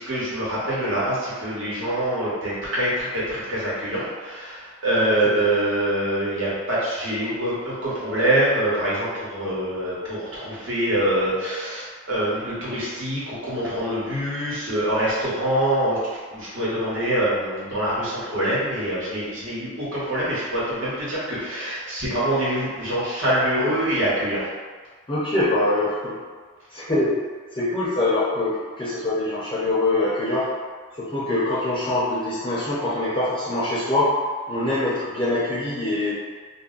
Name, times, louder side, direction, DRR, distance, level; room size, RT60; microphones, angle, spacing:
voice 1, 0.0-16.0 16.3-24.4, right 1 dB, 75° right, -9 dB, 1.1 m, -25 dB
voice 2, 5.0-5.4 25.1-26.1 26.7-27.1 27.5-30.5 31.0-34.1 34.5-36.2, left 2 dB, 25° left, -9 dB, 0.5 m, -24 dB
2.4 x 2.1 x 3.7 m, 1.5 s
head